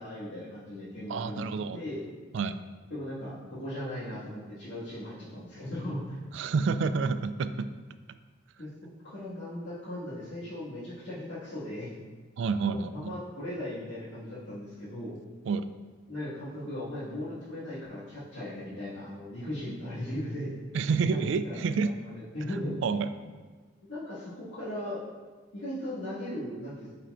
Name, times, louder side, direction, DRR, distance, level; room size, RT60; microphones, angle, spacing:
voice 1, 0.0-1.5 1.7-2.0 2.9-6.2 8.6-8.7 9.0-11.9 12.7-15.2 16.1-20.5 21.4-22.7 23.8-25.0 25.5-26.9, left 1 dB, 70° left, -13 dB, 1.9 m, -38 dB
voice 2, 1.1-1.8 2.3-2.6 6.3-7.7 12.4-13.1 15.5-15.7 20.7-21.9 22.5-23.1, right 5 dB, 65° right, 11 dB, 0.3 m, -29 dB
9.1 x 4.3 x 2.5 m, 1.4 s
head